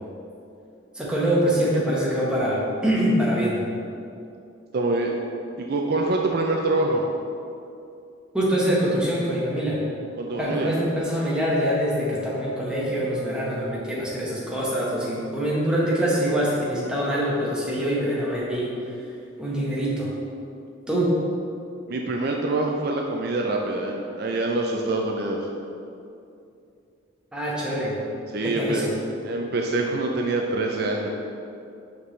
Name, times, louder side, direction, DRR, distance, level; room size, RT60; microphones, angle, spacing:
voice 1, 0.9-3.6 8.3-9.8 10.4-18.7 19.4-20.1 20.9-21.1 27.3-27.9 28.4-28.9, equal, 5° right, -7 dB, 1.1 m, -24 dB
voice 2, 4.7-5.1 5.6-7.0 10.2-10.8 21.9-25.5 28.3-28.9 29.2-31.1, right 2 dB, 50° right, 1 dB, 0.4 m, -25 dB
6.0 x 5.7 x 3.2 m, 2.6 s
head